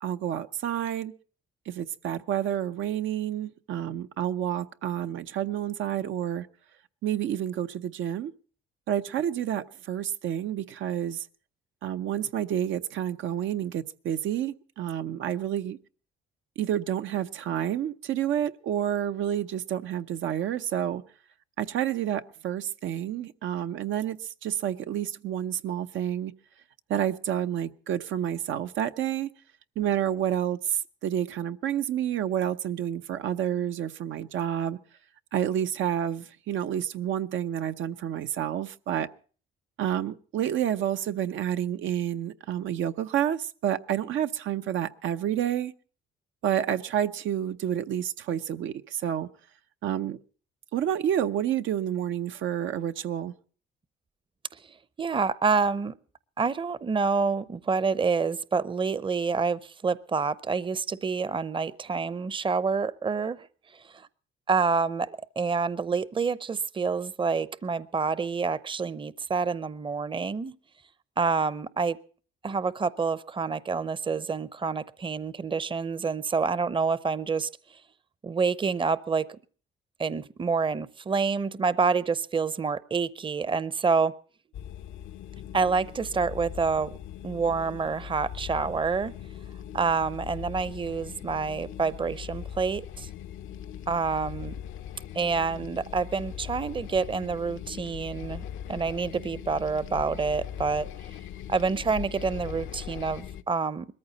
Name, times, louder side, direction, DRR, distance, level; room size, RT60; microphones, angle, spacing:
voice 1, 0.0-1.1 1.7-6.5 7.0-8.3 8.9-11.3 11.8-15.8 16.6-21.0 21.6-26.3 26.9-29.3 29.8-34.8 35.3-39.1 39.8-45.7 46.4-49.3 49.8-50.2 50.7-53.3, right 10 dB, 80° right, 0.8 m, -29 dB
voice 2, 55.0-55.9 56.4-63.5 63.9-64.1 64.5-70.5 71.2-72.0 72.4-77.5 78.2-79.3 80.0-84.1 85.5-86.9 87.2-89.1 89.7-93.1 93.9-94.5 95.1-100.9 101.5-103.9, right 5 dB, 25° right, 0.7 m, -27 dB
sound 1, 84.5-103.4, left 10 dB, 80° left, 0.8 m, -40 dB
21.0 x 14.0 x 4.1 m
cardioid pair, 90°, 20 cm